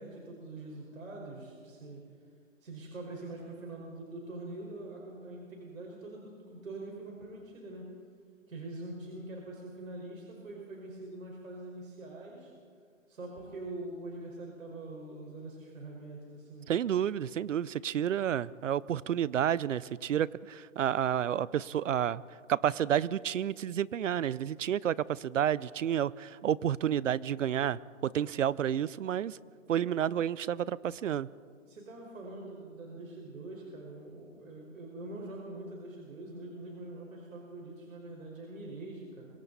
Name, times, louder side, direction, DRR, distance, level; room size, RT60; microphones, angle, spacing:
voice 1, 0.0-2.0 2.6-7.9 8.5-12.5 13.1-16.7 31.6-39.3, right 2 dB, 90° right, -1 dB, 5.0 m, -44 dB
voice 2, 16.7-22.2 22.5-29.4 29.7-31.3, right 9 dB, 70° right, 21 dB, 0.7 m, -30 dB
26.5 x 25.0 x 4.1 m, 2.1 s
hypercardioid pair, 160°, 39 cm